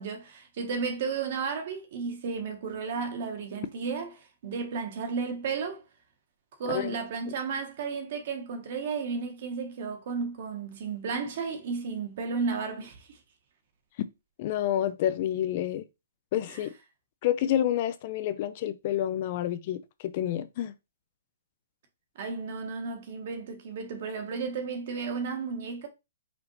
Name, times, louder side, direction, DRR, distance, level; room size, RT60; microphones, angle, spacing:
voice 1, 0.0-5.8 6.6-13.2 16.5-16.6 22.1-25.9, right 5 dB, 50° right, 1.1 m, -33 dB
voice 2, 6.7-7.0 14.4-15.8 16.3-16.7 17.2-20.7, left 11 dB, 40° left, 0.3 m, -29 dB
5.0 x 2.5 x 3.1 m
hypercardioid pair, 155°, 0 cm